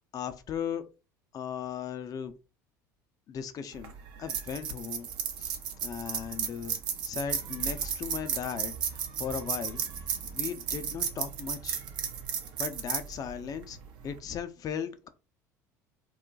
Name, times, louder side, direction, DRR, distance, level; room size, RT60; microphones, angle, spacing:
voice 1, 0.1-0.8 1.3-2.3 3.3-3.9 4.2-5.1 5.4-6.8 7.1-9.8 10.3-11.8 12.6-13.8 14.0-15.1, left 8 dB, 40° left, 0.5 m, -37 dB
sound 1, 3.7-14.2, right 7 dB, 60° right, 0.6 m, -34 dB
2.3 x 2.1 x 3.8 m
hypercardioid pair, 70°, 10 cm